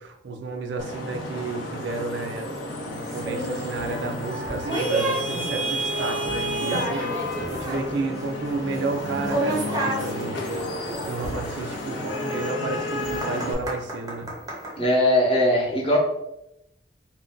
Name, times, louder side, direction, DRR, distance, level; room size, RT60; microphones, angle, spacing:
voice 1, 0.0-7.1 7.5-10.7 11.0-14.3, right 3 dB, 70° right, 5 dB, 0.4 m, -32 dB
Vehicle horn car horn honking / Traffic noise roadway noise, 0.8-13.5, left 1 dB, 85° left, 0.6 m, -31 dB
sound 1, 3.1-14.7, right 1 dB, 20° right, 0.6 m, -32 dB
voice 2, 14.8-16.0, left 1 dB, 30° left, -2 dB, 0.8 m, -20 dB
2.5 x 2.2 x 3.6 m, 0.85 s
head